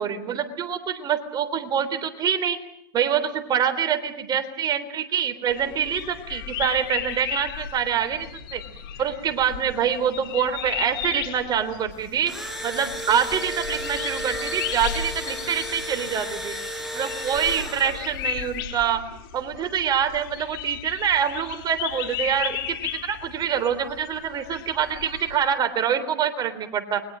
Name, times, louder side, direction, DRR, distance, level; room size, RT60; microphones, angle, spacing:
voice 1, 0.0-2.6 2.9-8.6 9.0-12.3 12.6-16.5 16.9-19.0 19.3-22.8 23.0-27.0, right 8 dB, 35° right, 9 dB, 3.6 m, -25 dB
sound 1, 5.5-25.3, left 10 dB, 65° left, 4.3 m, -35 dB
Engine / Drill, 12.0-18.3, right 1 dB, ahead, 5.6 m, -33 dB
29.0 x 22.5 x 6.3 m, 0.77 s
hypercardioid pair, 110°, 12 cm